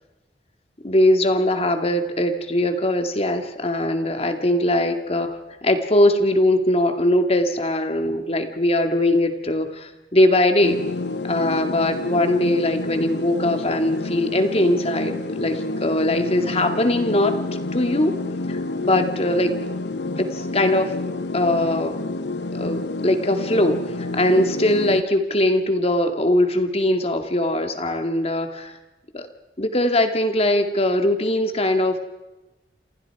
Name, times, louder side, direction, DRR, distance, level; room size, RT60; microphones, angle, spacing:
voice 1, 0.8-10.8 11.2-17.4 17.7-18.2 18.5-19.5 20.2-20.9 21.3-22.0 22.5-28.8 29.1-29.3 29.6-32.0, left 1 dB, 35° left, 6 dB, 2.2 m, -21 dB
sound 1, 10.6-25.0, left 2 dB, 75° left, 1.0 m, -29 dB
28.5 x 28.0 x 4.9 m, 1.1 s
head